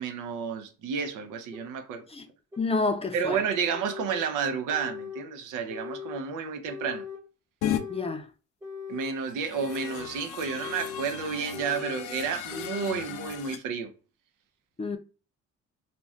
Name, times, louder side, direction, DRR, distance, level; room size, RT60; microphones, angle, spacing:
voice 1, 0.0-2.0 3.1-7.0 8.9-13.9, right 6 dB, 90° right, 0.6 m, -31 dB
sound 1, 1.5-1.6 2.5-2.6 3.5-4.3 4.7-5.3 5.7-6.3 6.7-7.2 7.6-8.2 8.6-9.2 9.6-10.1 10.5-11.1 11.5-12.1 12.5-13.1, left 6 dB, 10° right, 0.9 m, -40 dB
voice 2, 2.6-3.4 7.9-8.3 14.8-15.0, left 3 dB, 20° left, 0.5 m, -28 dB
sound 2, 7.6-7.8 9.2-13.6, left 10 dB, 80° left, 0.5 m, -35 dB
2.5 x 2.2 x 3.4 m
cardioid pair, 90°, 30 cm